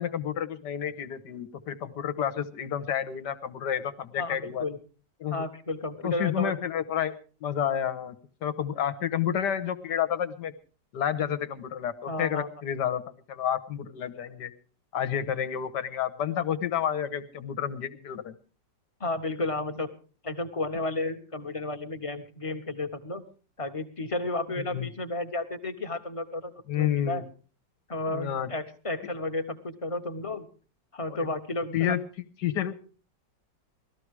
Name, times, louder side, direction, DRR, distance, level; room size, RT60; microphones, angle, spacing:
voice 1, 0.0-4.6 5.2-5.4 6.0-7.1 7.4-8.1 8.4-10.5 10.9-13.0 13.3-14.5 14.9-18.3 24.6-24.9 26.7-27.2 28.1-28.5 31.1-31.2 31.7-32.0 32.4-32.8, left 9 dB, 70° left, 12 dB, 1.7 m, -30 dB
voice 2, 4.2-4.8 5.3-6.5 12.1-12.5 19.0-19.9 20.2-23.2 23.6-27.2 27.9-30.5 30.9-31.9, left 2 dB, 20° left, 6 dB, 1.1 m, -32 dB
19.0 x 14.0 x 4.8 m, 0.38 s
omnidirectional pair, 1.9 m